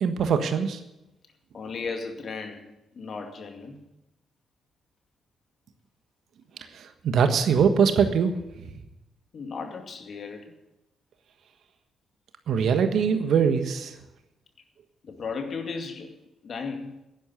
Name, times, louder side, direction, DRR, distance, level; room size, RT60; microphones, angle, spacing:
voice 1, 0.0-0.8 6.7-8.4 12.5-13.9, right 6 dB, 65° right, 8 dB, 1.4 m, -22 dB
voice 2, 1.5-3.8 9.3-10.5 15.0-16.1 16.4-16.9, left 4 dB, 55° left, 5 dB, 2.3 m, -35 dB
11.0 x 10.5 x 9.4 m, 0.93 s
hypercardioid pair, 45°, 0 cm